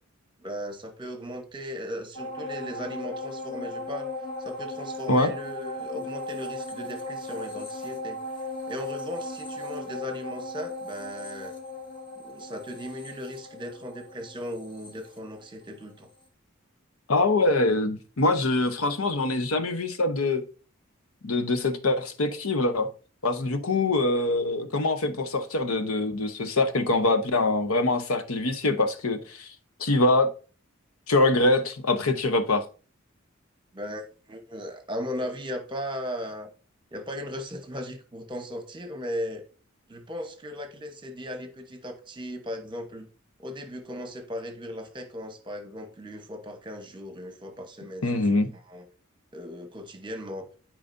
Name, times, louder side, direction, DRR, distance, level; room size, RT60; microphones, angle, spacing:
voice 1, 0.4-4.1 4.4-8.2 8.7-11.5 12.2-16.1 33.7-34.0 34.3-36.5 36.9-39.4 39.9-43.1 43.4-48.1 48.7-48.8 49.3-50.5, equal, 20° right, 1.0 m, -37 dB
sound 1, 2.1-15.8 16.2-16.3, left 2 dB, 25° left, 1.3 m, -37 dB
voice 2, 17.1-20.4 21.2-22.9 23.2-29.5 29.8-30.3 31.1-32.6 48.0-48.5, left 2 dB, 90° left, 0.9 m, -24 dB
12.5 x 4.9 x 2.6 m
head